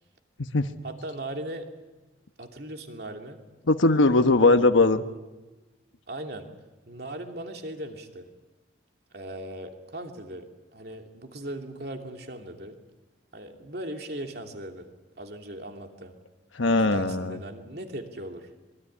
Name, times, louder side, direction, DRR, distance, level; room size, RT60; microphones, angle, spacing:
voice 1, 0.8-1.7 2.4-3.4 6.1-6.5 6.9-8.3 9.1-10.5 10.7-12.8 13.3-14.9 15.2-16.1 16.7-18.5, right 1 dB, 55° right, 3 dB, 2.9 m, -38 dB
voice 2, 3.7-5.0 16.5-17.4, left 2 dB, 90° left, 8 dB, 1.2 m, -20 dB
25.0 x 22.5 x 10.0 m, 1.1 s
head